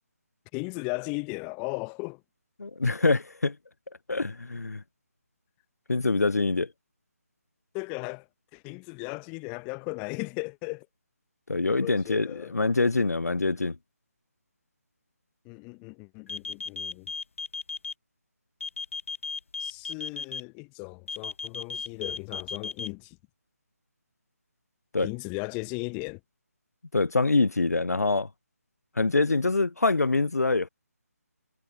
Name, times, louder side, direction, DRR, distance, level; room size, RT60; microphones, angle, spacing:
voice 1, 0.5-2.2 7.7-8.2 8.5-10.9 11.8-12.6 15.4-17.1 19.6-23.2 25.0-26.2, left 33 dB, 15° left, 1.0 m, -36 dB
voice 2, 2.6-3.5 4.1-4.8 5.9-6.7 11.5-13.8 24.9-25.1 26.9-28.3 29.0-30.7, left 3 dB, 75° left, 0.5 m, -25 dB
sound 1, 16.3-17.9 18.6-20.4 21.1-22.9, left 5 dB, 55° left, 0.8 m, -34 dB
figure-of-eight pair, 150°, 9 cm